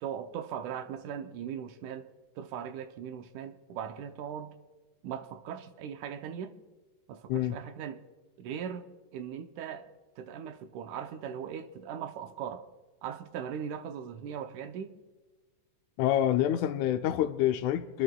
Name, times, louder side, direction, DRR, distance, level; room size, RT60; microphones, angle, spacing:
voice 1, 0.0-2.1 2.4-4.6 5.0-6.6 7.1-8.0 8.4-9.9 10.2-12.7 13.0-14.9, right 8 dB, 80° right, 2.1 m, -39 dB
voice 2, 16.0-18.0, left 12 dB, 80° left, 1.9 m, -27 dB
28.5 x 11.0 x 2.3 m
omnidirectional pair, 3.5 m